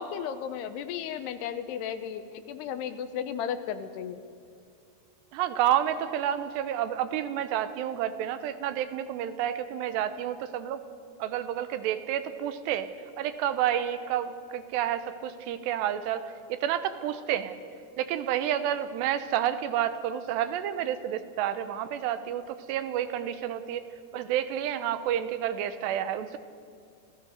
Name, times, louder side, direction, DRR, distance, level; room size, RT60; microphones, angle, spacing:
voice 1, 0.0-4.2, left 8 dB, 80° left, 10 dB, 2.9 m, -34 dB
voice 2, 5.3-10.8 11.2-12.9 13.2-17.6 18.0-23.8 24.1-26.4, right 10 dB, 90° right, 11 dB, 3.0 m, -30 dB
28.5 x 16.0 x 6.4 m, 2.2 s
omnidirectional pair, 4.9 m